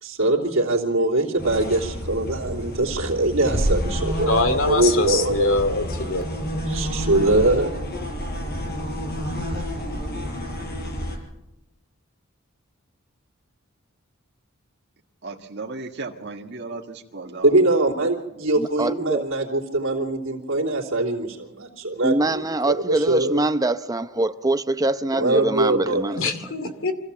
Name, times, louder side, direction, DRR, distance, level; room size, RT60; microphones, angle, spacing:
voice 1, 0.0-5.5 6.7-7.7 17.4-23.4 25.1-26.2, right 2 dB, 75° right, 3.2 m, -22 dB
sound 1, 1.4-11.2, equal, 55° left, 4.8 m, -29 dB
voice 2, 4.3-6.3 26.2-26.9, left 2 dB, 75° left, 2.4 m, -23 dB
voice 3, 15.2-17.6, right 3 dB, 60° right, 1.8 m, -35 dB
voice 4, 18.6-19.2 22.0-26.3, right 2 dB, 20° right, 0.7 m, -24 dB
25.5 x 15.5 x 7.3 m
head